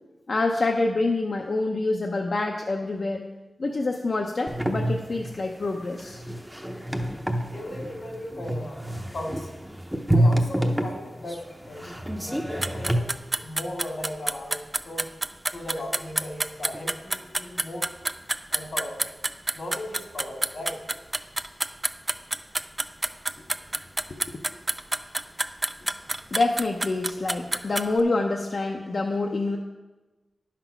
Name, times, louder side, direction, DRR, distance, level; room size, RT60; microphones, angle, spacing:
voice 1, 0.3-3.3 3.6-6.2 24.1-24.2 26.3-29.6, left 2 dB, 55° left, 1 dB, 0.6 m, -26 dB
sound 1, 4.5-13.0, right 1 dB, 5° right, 0.7 m, -27 dB
voice 2, 7.5-8.8 9.1-9.5 10.1-12.0 12.2-15.1 15.5-17.9 18.5-19.0 19.5-20.8, left 1 dB, 80° left, 0 dB, 2.1 m, -37 dB
sound 2, 12.6-28.0, right 2 dB, 20° right, 0.4 m, -28 dB
10.0 x 5.9 x 5.8 m, 1.2 s
wide cardioid pair, 110°, 0 cm